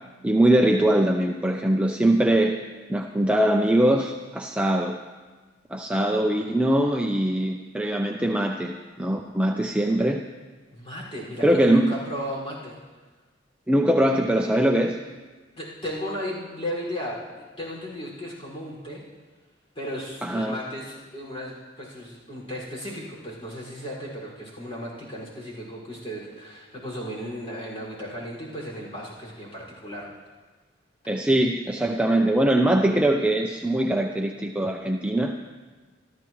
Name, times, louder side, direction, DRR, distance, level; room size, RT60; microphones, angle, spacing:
voice 1, 0.2-2.6 2.9-5.0 5.7-10.2 11.4-11.9 13.7-15.0 20.2-20.6 31.1-35.4, right 1 dB, 5° right, 1 dB, 0.6 m, -22 dB
voice 2, 10.7-12.8 15.6-19.0 19.8-30.1, equal, 30° left, -4 dB, 5.5 m, -35 dB
25.0 x 14.0 x 3.2 m, 1.3 s
head